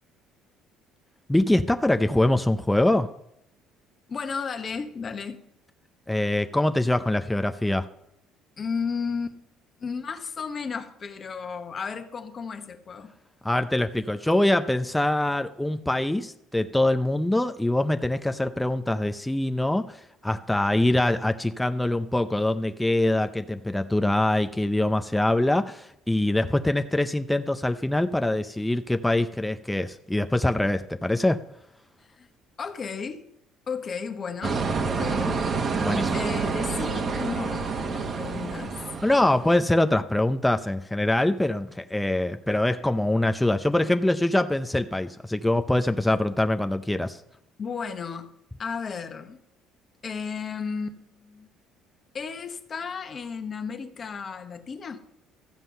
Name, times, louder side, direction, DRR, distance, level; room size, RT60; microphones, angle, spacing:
voice 1, 1.3-3.1 6.1-7.9 13.4-20.0 20.2-31.4 35.8-36.2 39.0-47.2, left 1 dB, 5° left, 0.5 m, -24 dB
voice 2, 4.1-5.4 8.6-9.4 9.8-13.1 32.2-32.3 32.6-33.3 33.7-35.4 36.1-38.8 46.1-46.2 47.6-48.3 48.6-49.4 50.0-51.5 52.1-55.0, left 5 dB, 35° left, 1.1 m, -34 dB
sound 1, 34.4-39.6, right 4 dB, 40° right, 1.3 m, -28 dB
13.5 x 7.6 x 5.5 m
cardioid pair, 110°, 0 cm